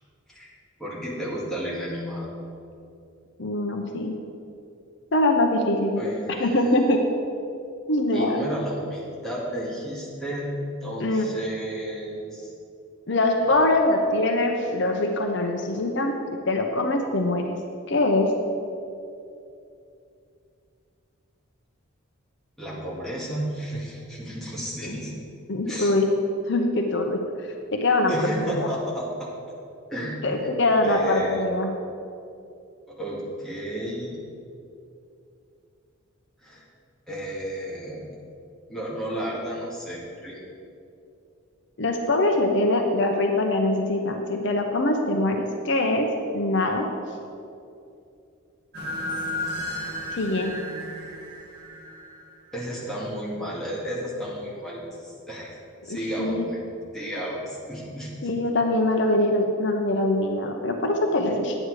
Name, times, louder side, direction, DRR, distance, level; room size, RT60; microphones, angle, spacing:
voice 1, 0.8-2.3 6.0-6.8 8.1-10.5 10.8-12.5 13.4-13.6 22.6-25.1 25.6-25.9 28.1-29.3 29.9-30.5 30.8-31.5 32.9-34.2 36.4-36.6 37.1-38.1 38.7-40.4 52.5-55.5 55.8-56.6 56.9-58.1, right 1 dB, ahead, -6 dB, 1.9 m, -32 dB
voice 2, 3.4-4.2 5.1-6.0 6.4-7.0 7.9-8.4 11.0-11.3 13.1-16.2 16.5-17.6 17.9-18.3 24.8-24.9 25.5-26.1 26.5-28.1 28.5-28.7 30.2-31.7 41.8-46.9 50.1-50.5 55.9-56.4 58.2-61.6, left 2 dB, 55° left, 3 dB, 0.8 m, -23 dB
sound 1, 48.7-52.7, left 1 dB, 50° right, 1.9 m, -33 dB
9.9 x 8.6 x 4.8 m, 2.6 s
head